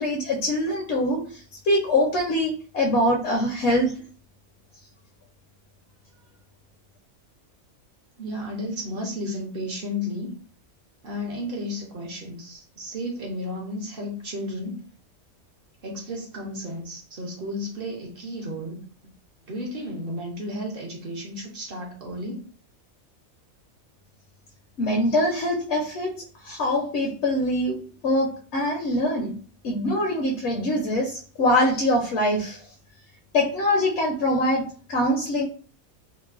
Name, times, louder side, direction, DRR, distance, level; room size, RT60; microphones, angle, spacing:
voice 1, 0.0-4.0 24.8-29.4 29.6-32.6 33.3-35.4, left 1 dB, 65° left, 0.8 m, -24 dB
voice 2, 8.2-10.3 11.0-14.8 15.8-19.1 19.5-22.4, left 1 dB, 55° right, 0.7 m, -33 dB
3.0 x 2.0 x 2.3 m
omnidirectional pair, 1.5 m